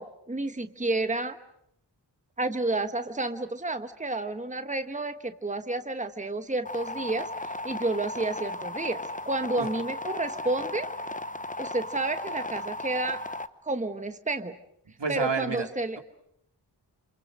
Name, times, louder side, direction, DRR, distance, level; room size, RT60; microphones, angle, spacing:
voice 1, 0.0-1.4 2.4-7.3 7.6-10.9 11.6-13.2 13.6-14.6 15.1-16.0, right 2 dB, 15° right, 8 dB, 1.3 m, -30 dB
sound 1, 6.7-13.5, left 2 dB, 20° left, 1.0 m, -36 dB
voice 2, 15.0-15.7, right 4 dB, 75° right, 4 dB, 3.0 m, -29 dB
28.0 x 27.0 x 6.4 m, 0.72 s
wide cardioid pair, 75°, 43 cm